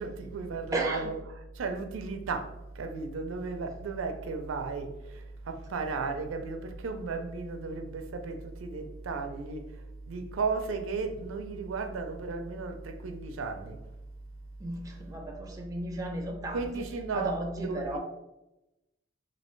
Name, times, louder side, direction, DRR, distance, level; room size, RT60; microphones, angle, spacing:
voice 1, 0.0-13.8 16.5-18.0, right 4 dB, 75° right, 0.4 m, -35 dB
voice 2, 0.7-1.1 14.6-16.8 17.1-18.0, right 1 dB, 15° right, 0.5 m, -34 dB
3.1 x 2.7 x 3.0 m
head